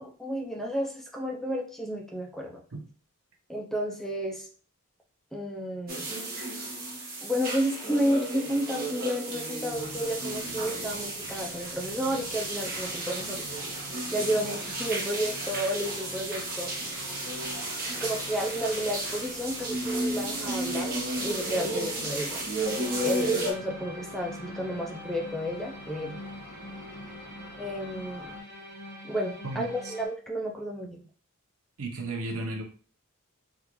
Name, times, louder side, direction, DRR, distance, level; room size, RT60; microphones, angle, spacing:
voice 1, 0.0-2.6 3.5-4.5 5.3-6.1 7.2-13.5 14.1-16.7 18.0-21.0 21.2-22.4 23.0-26.2 27.6-28.3 29.0-31.0, equal, ahead, 0 dB, 0.4 m, -31 dB
sound 1, 5.9-23.5, right 1 dB, 45° right, 1.0 m, -33 dB
sound 2, 9.7-28.4, left 1 dB, 80° left, 1.6 m, -48 dB
sound 3, 22.6-30.1, left 1 dB, 15° right, 1.3 m, -43 dB
voice 2, 29.4-29.9 31.8-32.6, right 2 dB, 75° right, 3 dB, 0.7 m, -34 dB
3.6 x 2.4 x 2.9 m, 0.43 s
head